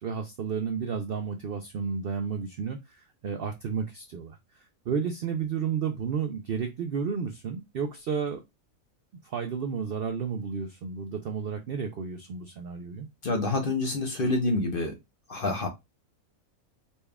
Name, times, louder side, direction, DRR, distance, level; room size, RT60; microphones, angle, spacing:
voice 1, 0.0-8.4 9.2-13.1, right 6 dB, 85° right, 6 dB, 0.5 m, -32 dB
voice 2, 13.2-15.0 15.3-15.7, left 2 dB, 50° left, 3 dB, 0.7 m, -27 dB
4.1 x 2.3 x 3.4 m, 0.21 s
omnidirectional pair, 1.6 m